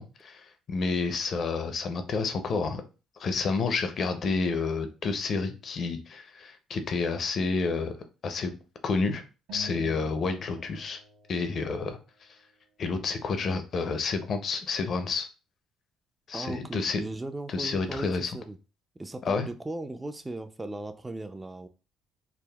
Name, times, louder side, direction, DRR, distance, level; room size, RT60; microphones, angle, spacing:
voice 1, 0.0-2.8 3.2-7.9 8.2-8.5 8.8-9.2 9.5-11.0 11.3-12.0 12.8-15.3 16.3-17.0 17.5-18.3 19.3-19.5, left 4 dB, 55° left, 8 dB, 0.5 m, -29 dB
sound 1, 9.5-12.1, left 2 dB, 80° right, 0.7 m, -46 dB
voice 2, 16.3-18.6 19.0-21.7, right 2 dB, 15° right, 9 dB, 0.3 m, -37 dB
3.4 x 2.0 x 2.3 m, 0.32 s
supercardioid pair, 80°, 0 cm